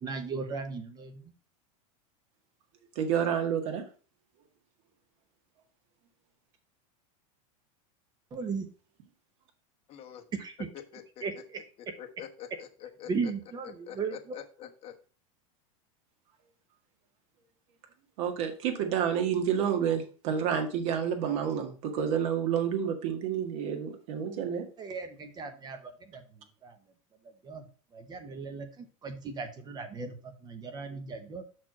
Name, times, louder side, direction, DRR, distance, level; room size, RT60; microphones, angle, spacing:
voice 1, 0.0-1.2 8.3-8.7 10.4-10.7 11.2-11.6 13.1-14.4 24.8-26.2 26.6-26.7 27.4-27.7 27.9-31.4, right 4 dB, 20° right, 8 dB, 0.9 m, -37 dB
voice 2, 3.0-3.8 18.2-24.7, right 8 dB, 55° right, 4 dB, 1.8 m, -29 dB
voice 3, 9.9-10.2 10.7-11.4 12.0-13.3 13.9-15.0, left 10 dB, 35° left, 4 dB, 1.1 m, -45 dB
6.0 x 4.5 x 6.0 m, 0.39 s
supercardioid pair, 150°, 18 cm